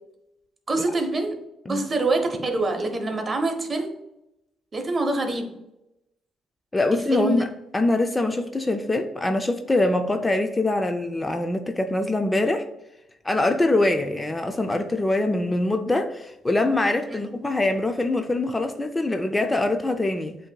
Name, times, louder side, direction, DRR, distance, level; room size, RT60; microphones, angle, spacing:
voice 1, 0.7-1.4 1.7-3.9 4.7-5.6 7.1-7.5 17.1-17.2, right 2 dB, 35° right, 5 dB, 0.8 m, -25 dB
voice 2, 6.7-12.6 13.2-20.4, left 2 dB, 15° left, 6 dB, 0.4 m, -24 dB
7.9 x 2.7 x 2.2 m, 0.88 s
cardioid pair, 90°, 0 cm